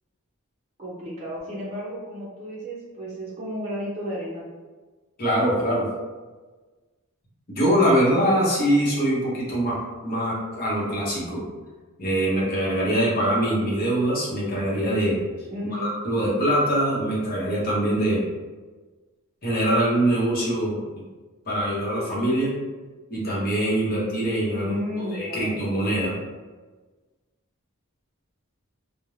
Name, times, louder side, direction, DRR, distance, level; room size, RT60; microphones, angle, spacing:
voice 1, 0.8-4.4 15.5-15.9 24.6-25.6, equal, 30° right, -8 dB, 0.5 m, -33 dB
voice 2, 5.2-5.9 7.5-9.8 10.0-11.4 12.0-15.2 15.7-18.2 19.4-21.0 21.5-22.5 23.1-26.2, right 1 dB, 40° left, -6 dB, 0.9 m, -23 dB
2.5 x 2.1 x 3.1 m, 1.3 s
head